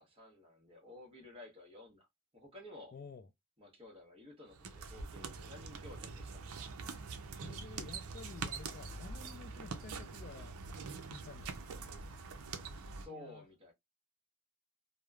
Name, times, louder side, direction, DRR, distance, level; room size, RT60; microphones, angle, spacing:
voice 1, 0.0-2.1 2.3-2.9 3.6-6.4 12.9-13.7, left 1 dB, 25° right, 1.0 m, -53 dB
voice 2, 2.9-3.3 7.4-10.6 10.9-11.5 13.0-13.5, left 5 dB, 40° left, 0.3 m, -52 dB
sound 1, 4.5-13.1, right 4 dB, 75° right, 0.5 m, -44 dB
3.0 x 2.0 x 2.3 m
head